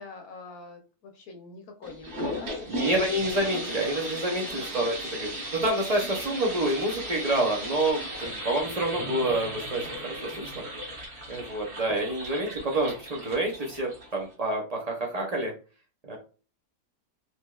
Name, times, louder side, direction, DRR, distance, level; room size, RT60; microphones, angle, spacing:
voice 1, 0.0-3.0 4.5-4.8 5.3-5.5, left 4 dB, 65° left, 4 dB, 1.2 m, -45 dB
sound 1, 1.8-14.3, equal, 40° right, 1.4 m, -36 dB
voice 2, 2.7-10.6 11.3-15.5 16.0-16.2, right 1 dB, 70° right, 0 dB, 0.3 m, -28 dB
4.3 x 3.0 x 2.3 m, 0.35 s
omnidirectional pair, 1.8 m